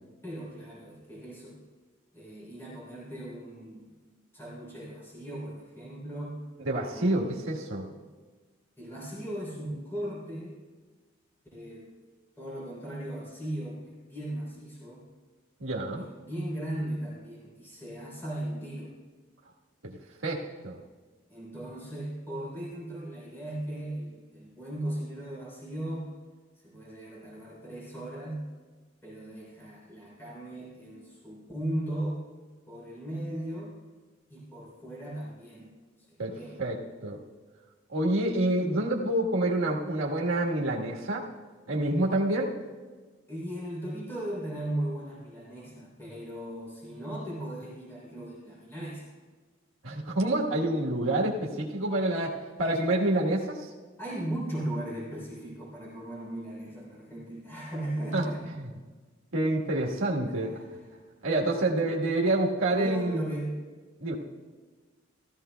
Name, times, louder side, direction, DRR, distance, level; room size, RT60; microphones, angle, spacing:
voice 1, 0.2-1.6 2.1-3.9 4.3-6.4 6.9-7.4 7.9-8.1 8.8-10.6 11.5-12.0 12.4-15.1 15.9-19.0 21.3-26.1 26.6-28.5 29.0-32.2 32.7-33.8 34.3-35.7 36.1-36.6 43.3-49.1 54.0-58.5 60.4-60.8 62.8-63.6, right 1 dB, 10° left, -5 dB, 3.4 m, -37 dB
voice 2, 6.6-7.9 15.6-16.1 19.8-20.0 20.2-20.8 36.2-36.8 37.0-37.2 37.9-41.3 41.7-42.5 49.8-52.3 52.6-53.7 58.1-58.2 58.6-58.7 59.3-60.6 61.2-63.2 64.0-64.2, right 1 dB, 90° right, -2 dB, 1.4 m, -27 dB
16.5 x 14.0 x 2.2 m, 1.4 s
head